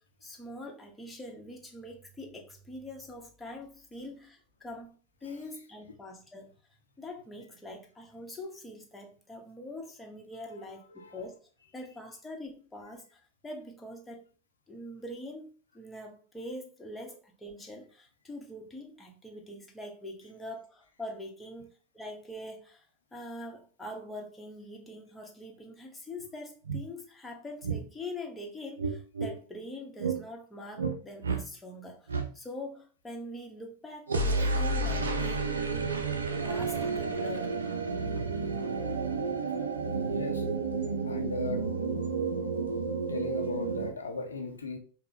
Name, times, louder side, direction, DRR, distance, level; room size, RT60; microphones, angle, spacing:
voice 1, 0.2-6.5 7.0-11.4 11.7-14.2 14.7-21.7 21.9-22.9 23.1-35.5 36.4-37.6, left 1 dB, 10° left, 1.0 m, -43 dB
voice 2, 10.9-11.2 40.0-40.4 41.0-41.7 43.1-44.8, left 3 dB, 80° left, 0.6 m, -37 dB
sound 1, 26.2-26.3 26.6-26.8 27.6-27.8 28.8-29.3 30.0-30.2 30.8-31.0 31.2-31.4 32.1-32.3 34.1-43.9, right 4 dB, 75° right, 0.5 m, -31 dB
5.2 x 2.2 x 2.8 m
figure-of-eight pair, 85°, 0 cm